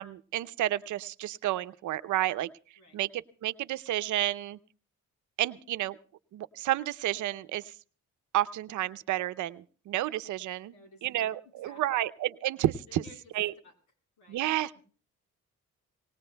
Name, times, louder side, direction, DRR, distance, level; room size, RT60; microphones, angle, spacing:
voice 1, 0.0-2.5 2.9-4.6 5.4-6.0 6.3-7.7 8.3-10.7 11.0-13.0 13.3-13.5 14.3-14.7, right 14 dB, 75° right, 13 dB, 0.7 m, -31 dB
voice 2, 10.6-11.3 11.6-11.8 12.9-13.3 13.6-13.8 14.2-14.8, left 3 dB, 75° left, 4 dB, 3.9 m, -55 dB
26.5 x 18.5 x 2.2 m, 0.40 s
cardioid pair, 90°, 30 cm